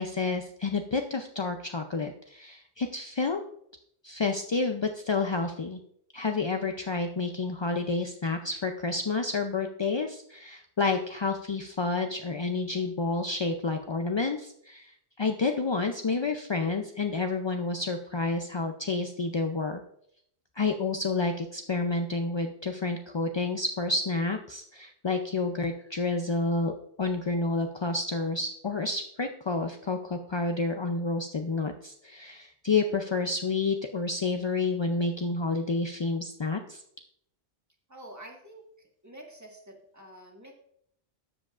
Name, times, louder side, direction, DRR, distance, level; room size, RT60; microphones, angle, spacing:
voice 1, 0.0-3.4 4.0-5.8 6.1-19.8 20.6-36.8, left 3 dB, 45° left, 5 dB, 0.3 m, -29 dB
voice 2, 37.9-40.5, right 1 dB, 15° right, 0 dB, 1.5 m, -48 dB
13.0 x 7.5 x 2.5 m, 0.70 s
omnidirectional pair, 1.2 m